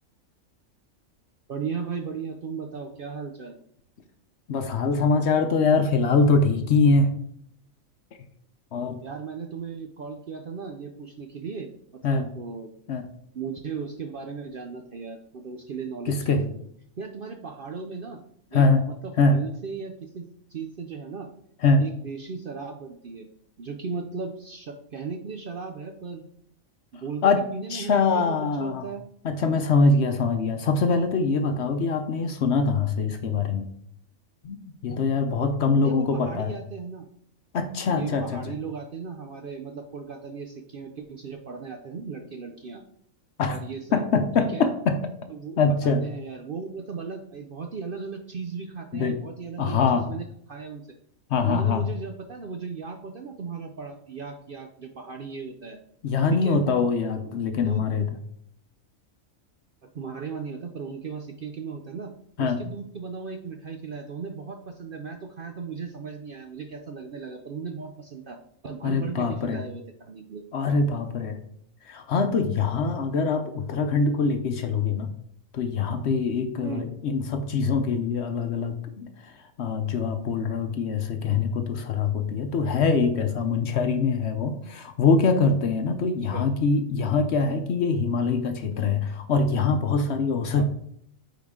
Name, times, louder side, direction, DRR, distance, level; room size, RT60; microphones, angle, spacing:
voice 1, 1.5-3.6 9.0-11.7 12.1-12.7 13.3-16.4 17.0-18.2 18.5-21.3 21.8-23.3 23.6-26.3 26.9-29.0 35.7-37.0 37.9-42.8 43.4-44.0 44.4-44.7 45.3-50.8 51.5-55.8 56.3-56.6 57.5-57.8 59.9-62.1 62.4-68.4 68.6-70.4 76.6-76.9 86.3-86.5 90.6-90.7, right 5 dB, 55° right, 4 dB, 0.6 m, -36 dB
voice 2, 4.5-7.1 8.7-9.0 12.0-12.3 12.9-13.1 16.1-16.4 18.5-18.8 19.2-19.4 21.6-21.8 27.2-27.4 27.7-28.9 29.2-33.7 34.4-36.5 37.5-38.4 43.4-43.6 43.9-45.0 45.6-46.0 48.9-49.2 49.6-50.1 51.3-51.9 56.0-58.1 62.4-62.6 68.8-69.6 70.5-71.4 71.9-75.1 75.5-90.6, left 4 dB, 60° left, 7 dB, 0.9 m, -23 dB
9.2 x 3.8 x 3.6 m, 0.68 s
omnidirectional pair, 1.4 m